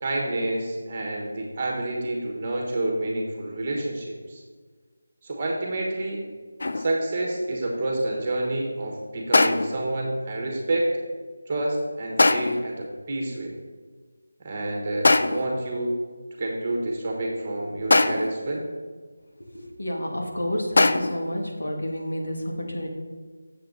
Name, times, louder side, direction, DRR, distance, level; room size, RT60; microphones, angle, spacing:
voice 1, 0.0-4.4 5.2-6.2 6.7-11.0 11.5-13.5 14.4-16.0 16.4-18.6, right 1 dB, 20° right, -1 dB, 1.2 m, -28 dB
sound 1, 6.6-7.0 9.3-9.9 12.2-12.7 15.0-15.6 17.9-18.5 20.8-21.3, left 2 dB, 50° left, 0.4 m, -21 dB
voice 2, 19.8-22.9, equal, 85° left, 0 dB, 1.8 m, -29 dB
7.6 x 7.1 x 3.8 m, 1.5 s
figure-of-eight pair, 175°, 0 cm